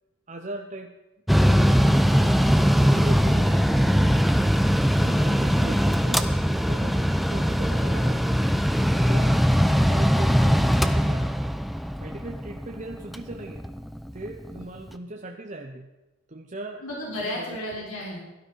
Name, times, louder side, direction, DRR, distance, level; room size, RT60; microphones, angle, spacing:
voice 1, 0.3-0.9 1.4-2.4 2.8-4.3 4.9-8.5 8.8-11.3 12.0-13.7 14.1-15.9 16.3-16.8 17.2-17.6, right 2 dB, 35° right, 2 dB, 0.9 m, -39 dB
Mechanical fan, 1.3-14.6, equal, ahead, 0.4 m, -21 dB
voice 2, 16.8-18.2, left 1 dB, 80° left, -3 dB, 4.0 m, -35 dB
17.0 x 12.5 x 4.7 m, 1.0 s
head